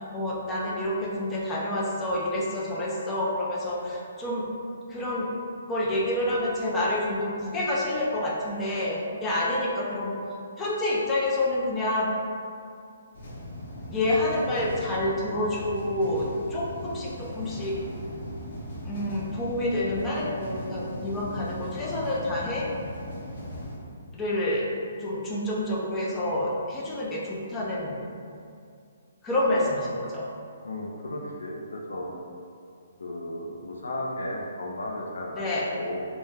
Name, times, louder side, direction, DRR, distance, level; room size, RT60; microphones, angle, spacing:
voice 1, 0.1-4.5 4.9-5.3 5.7-10.1 10.6-12.1 13.9-17.8 18.8-22.7 24.1-24.7 25.0-28.0 29.2-30.3 35.4-35.7, left 1 dB, 15° left, -5 dB, 0.4 m, -28 dB
sound 1, 13.1-23.8, left 1 dB, 60° left, 0.8 m, -38 dB
voice 2, 30.6-32.1 33.0-35.4 35.7-36.1, left 1 dB, 85° left, -1 dB, 0.4 m, -34 dB
2.2 x 2.1 x 3.1 m, 2.3 s
hypercardioid pair, 145°, 0 cm